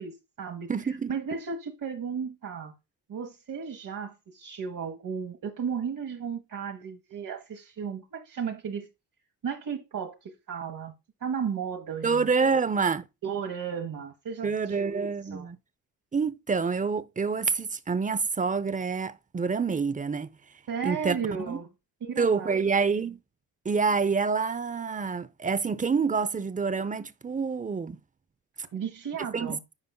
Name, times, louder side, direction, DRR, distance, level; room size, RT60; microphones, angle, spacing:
voice 1, 0.0-2.7 3.1-8.9 9.4-10.9 11.2-12.3 13.2-15.5 20.7-21.7 22.0-22.7 28.7-29.6, right 6 dB, 50° right, 1.3 m, -34 dB
voice 2, 0.7-1.1 12.0-13.1 14.4-15.6 16.1-20.3 20.8-21.6 22.2-23.2 23.6-28.0 29.3-29.6, right 5 dB, 20° right, 0.7 m, -27 dB
9.7 x 5.1 x 2.3 m
supercardioid pair, 70°, 40 cm